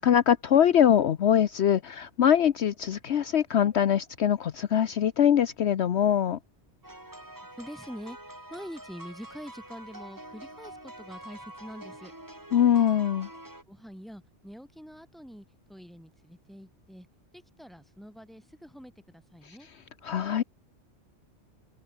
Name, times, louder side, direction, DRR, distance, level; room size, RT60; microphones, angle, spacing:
voice 1, 0.0-6.4 12.5-13.3 20.0-20.4, left 9 dB, 65° left, 1.0 m, -23 dB
sound 1, 6.8-13.6, right 1 dB, 15° right, 2.6 m, -46 dB
voice 2, 7.6-12.1 13.7-17.1 17.3-19.7, equal, ahead, 6.1 m, -45 dB
open air
omnidirectional pair, 1.2 m